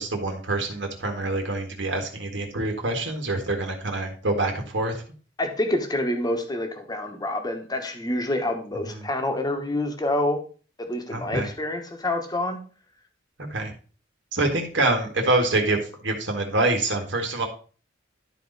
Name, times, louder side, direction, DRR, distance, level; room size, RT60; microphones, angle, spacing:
voice 1, 0.0-4.9 11.1-11.5 13.5-13.7 14.3-17.5, right 2 dB, 70° right, 3 dB, 1.7 m, -25 dB
voice 2, 5.4-10.4 10.8-12.6, left 1 dB, 20° left, 5 dB, 1.2 m, -27 dB
12.0 x 4.2 x 4.0 m, 0.39 s
head